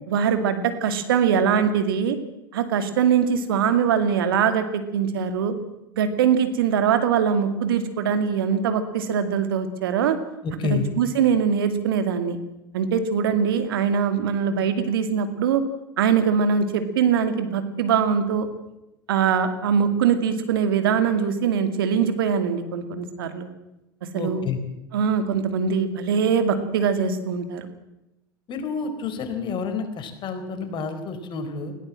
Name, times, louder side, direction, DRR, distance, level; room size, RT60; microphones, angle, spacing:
voice 1, 0.1-2.2 2.5-4.6 4.9-5.5 5.9-10.2 10.7-12.4 12.7-15.6 16.0-18.5 19.1-23.5 24.1-24.5 24.9-27.7, right 7 dB, 75° right, 9 dB, 2.4 m, -22 dB
voice 2, 10.4-10.8 24.1-24.6 28.5-31.7, left 5 dB, 40° left, 7 dB, 4.2 m, -29 dB
20.5 x 17.0 x 7.7 m, 0.92 s
hypercardioid pair, 85°, 12 cm